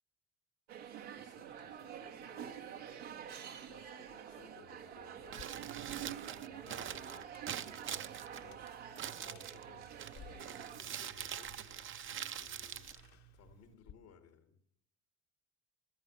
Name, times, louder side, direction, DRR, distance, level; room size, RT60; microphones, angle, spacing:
sound 1, 0.7-10.8, right 9 dB, 90° right, 1.3 m, -48 dB
voice 1, 1.1-5.4 6.0-11.5 12.1-13.0 13.3-14.6, left 6 dB, 80° left, 7 dB, 1.8 m, -61 dB
Crumpling crinkling, 5.2-13.7, right 9 dB, 35° right, 0.6 m, -45 dB
sound 2, 5.3-13.9, left 9 dB, 55° left, 1.0 m, -61 dB
13.5 x 10.0 x 6.7 m, 0.69 s
hypercardioid pair, 60°, 34 cm